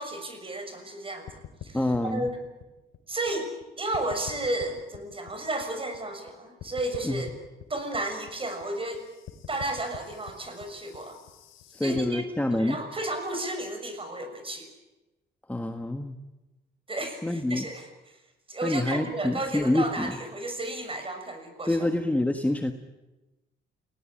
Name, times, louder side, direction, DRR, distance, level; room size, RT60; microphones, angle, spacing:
voice 1, 0.0-2.4 3.1-3.5 3.8-7.3 7.7-9.0 9.5-11.2 11.8-12.2 12.5-14.7 16.9-17.9 18.5-21.9, right 2 dB, 25° right, 6 dB, 6.4 m, -33 dB
sound 1, 1.3-3.6 3.9-6.3 6.6-12.0, left 11 dB, 90° left, 2.7 m, -46 dB
voice 2, 1.7-2.3 7.0-7.2 11.7-12.8 15.5-16.2 17.2-17.7 18.6-20.2 21.6-22.7, left 1 dB, 5° left, 5 dB, 1.5 m, -27 dB
28.5 x 18.0 x 8.8 m, 1.1 s
cardioid pair, 90°, 20 cm